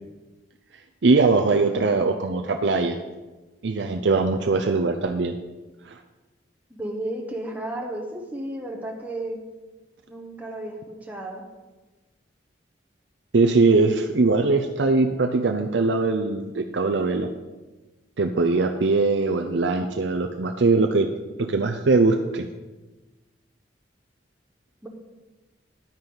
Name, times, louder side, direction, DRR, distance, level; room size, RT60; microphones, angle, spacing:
voice 1, 1.0-3.0 3.6-5.3 5.9-6.0 13.3-17.3 18.2-21.1 21.4-22.5, right 3 dB, 70° right, 4 dB, 0.6 m, -21 dB
voice 2, 1.6-2.0 6.7-9.4 10.1-11.4 24.8-24.9, right 1 dB, 10° right, 0 dB, 1.2 m, -33 dB
10.5 x 9.7 x 3.9 m, 1.2 s
head